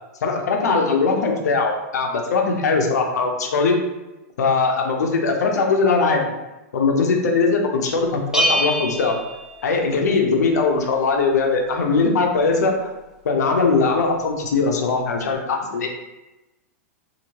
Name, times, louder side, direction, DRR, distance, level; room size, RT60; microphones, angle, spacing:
voice 1, 0.2-3.8 4.4-6.3 6.7-9.2 9.6-12.9 13.2-15.9, left 4 dB, 80° left, 2 dB, 0.7 m, -20 dB
Bell, 8.3-10.2, equal, 5° right, 0.6 m, -24 dB
2.9 x 2.8 x 2.9 m, 1.0 s
hypercardioid pair, 120°, 9 cm